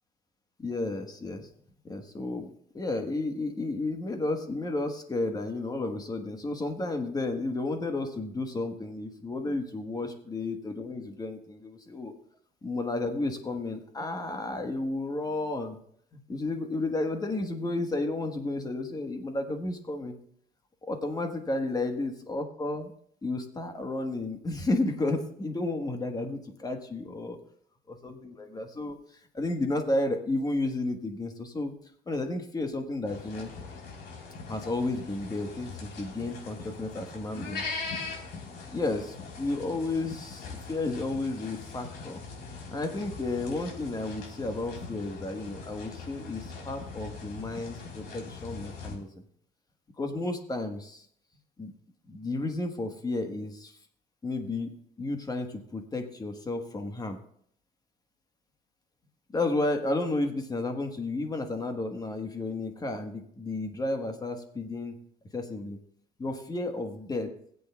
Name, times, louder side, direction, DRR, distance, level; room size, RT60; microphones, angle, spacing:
voice 1, 0.6-1.5 1.8-12.1 12.6-15.8 16.1-20.2 20.8-22.9 23.2-27.4 27.9-29.0 29.3-31.7 32.1-33.5 34.5-37.7 38.7-42.2 42.7-49.1 50.0-51.1 51.6-51.7 52.0-53.8 54.2-57.2 59.3-65.0 65.3-65.8 66.2-67.3, left 2 dB, 20° left, 5 dB, 1.3 m, -32 dB
sound 1, 33.1-49.0, left 4 dB, 70° left, 3.7 m, -41 dB
21.0 x 8.1 x 2.3 m, 0.66 s
cardioid pair, 110°, 17 cm